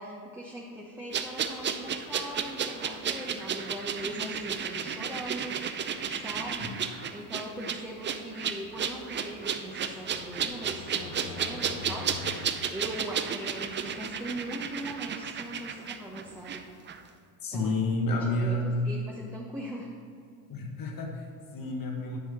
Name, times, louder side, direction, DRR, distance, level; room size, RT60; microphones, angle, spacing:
voice 1, 0.0-12.1 12.7-16.7 17.5-17.7 18.2-19.9, right 1 dB, 5° right, -4 dB, 1.0 m, -40 dB
sound 1, 1.1-16.6 16.9-17.0, right 7 dB, 25° right, 0.5 m, -33 dB
sound 2, 9.1-13.4, left 6 dB, 65° left, 0.9 m, -45 dB
voice 2, 17.4-18.8 20.5-22.2, left 1 dB, 45° left, 1 dB, 1.7 m, -30 dB
10.5 x 3.5 x 6.9 m, 2.3 s
supercardioid pair, 90°, 46 cm